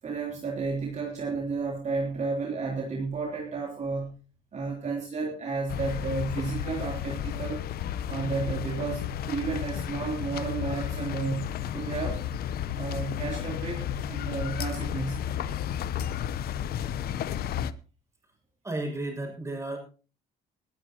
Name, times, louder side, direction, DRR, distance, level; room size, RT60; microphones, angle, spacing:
voice 1, 0.0-4.1 4.5-7.6 8.1-12.2 12.8-15.2, right 4 dB, 45° right, -1 dB, 3.5 m, -32 dB
sound 1, 5.7-17.7, left 10 dB, 65° left, 0.9 m, -32 dB
voice 2, 18.6-19.8, right 2 dB, 15° right, 3 dB, 6.9 m, -33 dB
20.5 x 12.0 x 3.0 m, 0.35 s
cardioid pair, 110°, 17 cm